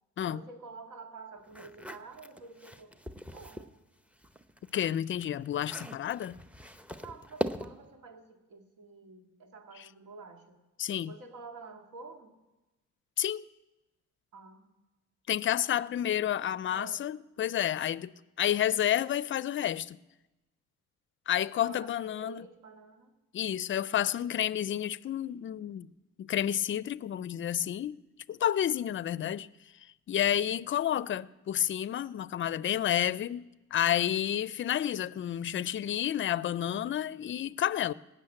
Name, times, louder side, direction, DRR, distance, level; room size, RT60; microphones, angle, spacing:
voice 1, 0.2-2.9 3.3-3.8 7.0-10.6 11.1-12.4 14.3-14.7 16.7-17.0 21.4-23.2, right 4 dB, 80° right, 1.9 m, -49 dB
sound 1, 1.5-3.7 4.1-7.9, equal, 5° right, 0.7 m, -40 dB
voice 2, 4.7-6.4 10.8-11.1 13.2-13.4 15.3-18.1 18.4-20.0 21.3-22.4 23.3-25.9 26.2-28.0 28.3-29.5 30.1-33.5 33.7-37.9, left 11 dB, 40° left, 0.4 m, -30 dB
17.5 x 6.4 x 8.7 m
cardioid pair, 90°, 30 cm